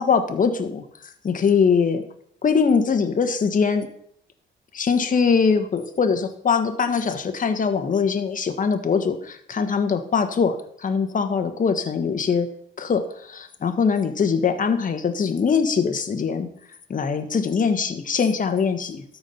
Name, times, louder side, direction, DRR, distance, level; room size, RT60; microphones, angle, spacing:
voice 1, 0.0-2.0 2.4-3.9 4.7-12.5 12.8-16.5 16.9-19.0, left 5 dB, 40° left, 7 dB, 1.4 m, -22 dB
13.0 x 4.8 x 5.8 m, 0.67 s
cardioid pair, 90°, 20 cm